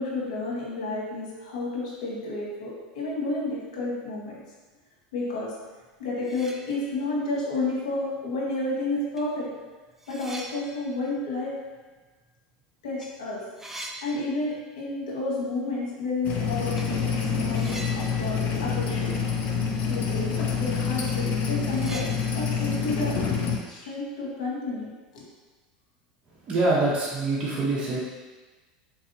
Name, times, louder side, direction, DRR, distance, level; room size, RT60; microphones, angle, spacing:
voice 1, 0.0-4.4 5.1-5.5 6.0-9.5 10.1-11.5 12.8-13.4 14.0-18.4 18.6-19.1 19.9-22.1 22.3-23.1 23.7-25.2, left 2 dB, 85° left, -5 dB, 1.1 m, -31 dB
sound 1, 5.8-5.9 6.2-7.2 7.6-7.7 8.7-8.8 9.2-12.6 12.9-13.1 13.3-14.9 15.2-15.3 16.7-17.0 17.5-19.6 19.9-20.0 20.5-20.6 20.9-24.1, right 1 dB, 10° right, 0.4 m, -44 dB
sound 2, 16.2-23.6, left 6 dB, 45° left, 0.5 m, -27 dB
voice 2, 26.5-28.0, right 2 dB, 30° right, -6 dB, 0.8 m, -24 dB
4.0 x 2.7 x 2.6 m, 1.3 s
supercardioid pair, 105°, 4 cm